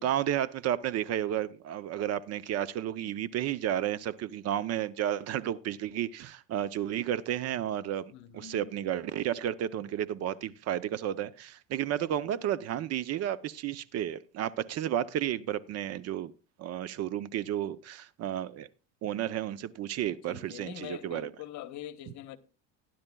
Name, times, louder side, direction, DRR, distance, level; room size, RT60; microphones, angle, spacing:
voice 1, 0.0-16.3 16.6-18.7 19.0-21.3, right 11 dB, 45° right, 0.6 m, -32 dB
voice 2, 8.1-8.7 20.3-22.4, left 12 dB, 50° left, 1.1 m, -44 dB
19.0 x 10.5 x 2.3 m
supercardioid pair, 110°, 36 cm